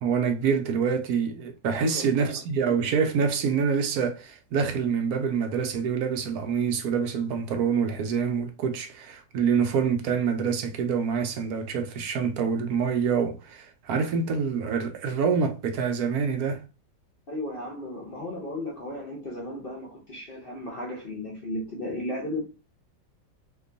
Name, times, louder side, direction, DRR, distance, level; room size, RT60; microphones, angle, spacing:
voice 1, 0.0-16.6, right 6 dB, 70° right, 1.0 m, -26 dB
voice 2, 1.8-2.4 17.3-22.4, left 1 dB, 50° left, 0.6 m, -35 dB
3.0 x 2.2 x 3.8 m
omnidirectional pair, 2.0 m